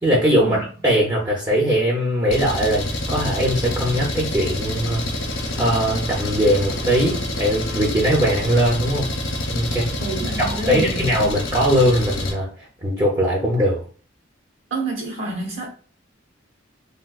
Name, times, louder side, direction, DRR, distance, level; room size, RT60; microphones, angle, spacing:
voice 1, 0.0-5.0 5.6-9.1 9.5-9.9 10.4-12.5 12.8-13.8, equal, 20° right, 0.5 m, -20 dB
Engine, 2.3-12.3, left 1 dB, 65° left, 0.7 m, -27 dB
voice 2, 10.0-11.0 14.7-15.7, right 2 dB, 80° right, 1.1 m, -28 dB
3.4 x 2.3 x 2.3 m
head